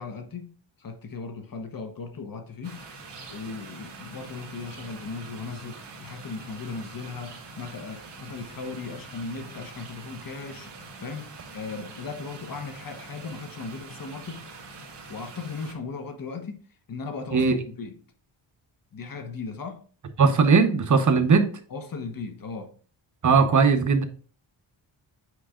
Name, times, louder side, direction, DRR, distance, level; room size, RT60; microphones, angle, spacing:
voice 1, 0.0-2.8 3.3-10.8 11.0-14.4 15.1-16.6 16.9-18.0 18.9-19.8 21.7-22.7, left 4 dB, 45° left, 1.1 m, -37 dB
sound 1, 2.6-15.8, right 3 dB, 55° right, 1.6 m, -44 dB
voice 2, 20.2-21.5 23.2-24.0, right 5 dB, 40° right, 0.9 m, -19 dB
8.3 x 4.7 x 2.4 m
cardioid pair, 85°, 49 cm